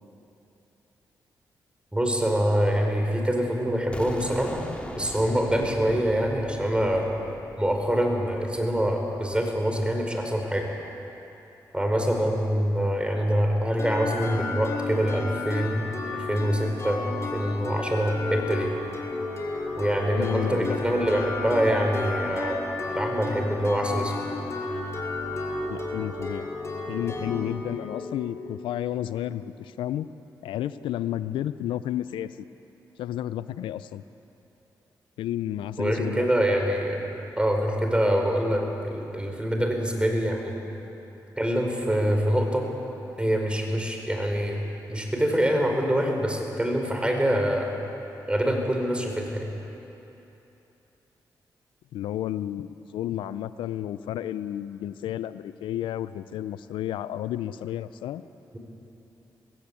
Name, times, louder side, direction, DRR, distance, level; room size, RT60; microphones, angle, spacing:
voice 1, 1.9-4.6 5.0-7.1 7.6-10.7 11.7-15.8 16.1-17.0 17.3-18.7 19.8-22.6 22.9-24.3 35.8-37.0 37.4-40.6 41.4-42.7 43.2-44.6 44.9-47.8 48.3-49.5, equal, 10° right, 2 dB, 5.0 m, -25 dB
sound 1, 3.9-9.7, left 1 dB, 15° left, 2.9 m, -41 dB
sound 2, 13.8-29.4, left 3 dB, 35° left, 5.4 m, -33 dB
voice 2, 20.1-20.8 25.7-26.5 26.9-30.1 30.4-32.3 33.0-34.0 35.2-36.3 51.9-58.2, left 12 dB, 85° left, 14 dB, 0.5 m, -31 dB
20.5 x 16.5 x 8.5 m, 3.0 s
supercardioid pair, 45°, 8 cm